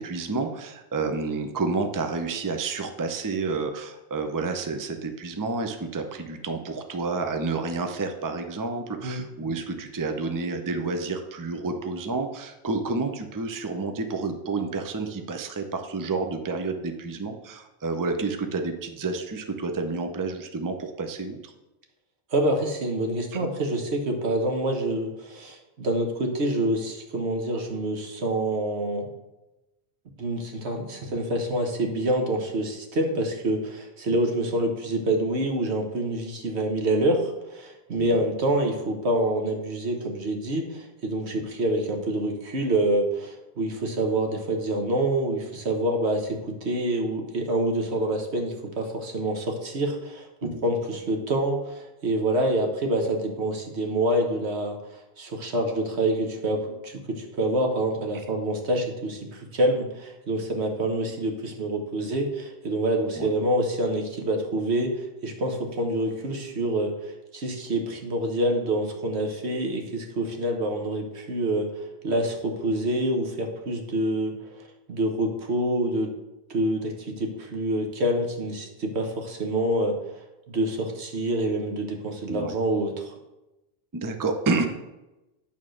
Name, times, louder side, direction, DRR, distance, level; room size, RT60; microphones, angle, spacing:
voice 1, 0.0-21.5 34.1-34.2 38.0-38.2 50.4-50.6 63.2-63.3 82.3-82.5 83.9-84.7, right 3 dB, 25° right, 6 dB, 0.6 m, -30 dB
voice 2, 22.3-29.1 30.2-76.1 76.5-80.0 80.5-83.1, right 1 dB, 75° right, 2 dB, 1.5 m, -27 dB
8.9 x 3.7 x 6.3 m, 0.99 s
omnidirectional pair, 1.1 m